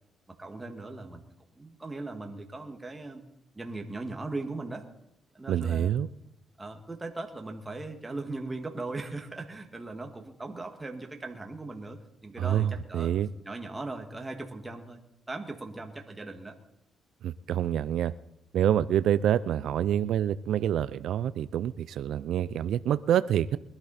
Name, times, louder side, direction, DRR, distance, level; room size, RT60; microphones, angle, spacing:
voice 1, 0.3-1.2 1.5-3.2 3.6-4.8 5.3-5.9 6.6-13.1 13.5-15.0 15.3-16.6, right 2 dB, 20° right, 3 dB, 1.9 m, -39 dB
voice 2, 5.5-6.1 12.4-13.3 17.2-18.1 18.5-23.6, right 10 dB, 75° right, 14 dB, 0.4 m, -27 dB
21.0 x 12.0 x 4.1 m, 0.84 s
cardioid pair, 90°, 0 cm